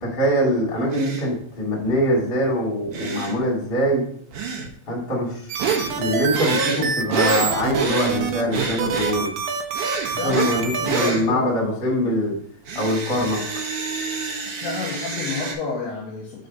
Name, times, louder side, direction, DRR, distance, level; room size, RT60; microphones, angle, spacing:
voice 1, 0.0-4.0 4.9-5.6 5.9-9.3 10.2-12.3 12.7-13.6, equal, 25° left, -4 dB, 1.2 m, -23 dB
sound 1, 0.9-1.3 2.9-3.4 4.3-4.7 5.6-5.9 6.3-8.2 8.5-9.2 9.7-10.6 10.8-11.2 12.6-15.5, right 4 dB, 65° right, 2.0 m, -27 dB
sound 2, 5.5-11.1, right 6 dB, 80° right, 2.3 m, -26 dB
voice 2, 10.2-10.5 10.8-11.8 14.6-16.5, left 5 dB, 75° left, -1 dB, 2.4 m, -31 dB
6.4 x 4.2 x 5.4 m, 0.63 s
omnidirectional pair, 5.5 m